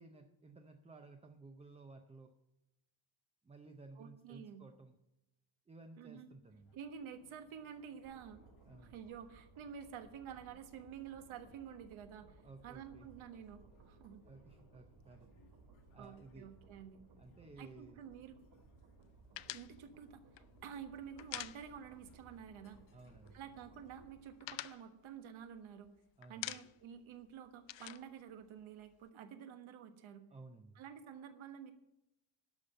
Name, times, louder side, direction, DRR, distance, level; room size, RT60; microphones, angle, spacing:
voice 1, 0.0-2.3 3.4-5.0 5.7-6.8 8.6-9.0 12.4-13.1 14.2-15.3 15.9-16.6 17.2-18.0 22.9-23.4 26.2-26.5 30.3-30.8, right 3 dB, 15° right, 5 dB, 0.5 m, -56 dB
voice 2, 4.0-4.6 6.0-6.3 6.7-8.4 8.8-14.2 16.0-17.0 17.6-18.4 19.4-20.2 20.6-22.8 23.3-25.9 26.3-30.2 30.7-31.7, right 8 dB, 80° right, 7 dB, 1.4 m, -50 dB
sound 1, 6.5-24.5, left 5 dB, 85° left, 2.0 m, -70 dB
sound 2, 8.0-24.2, right 4 dB, 55° right, 2.0 m, -63 dB
sound 3, 19.3-22.1 22.4-22.6 22.9-23.6 23.9-25.9 26.2-27.0 27.2-29.1, left 16 dB, 70° left, 0.5 m, -47 dB
12.0 x 5.5 x 8.8 m, 0.90 s
cardioid pair, 175°, 47 cm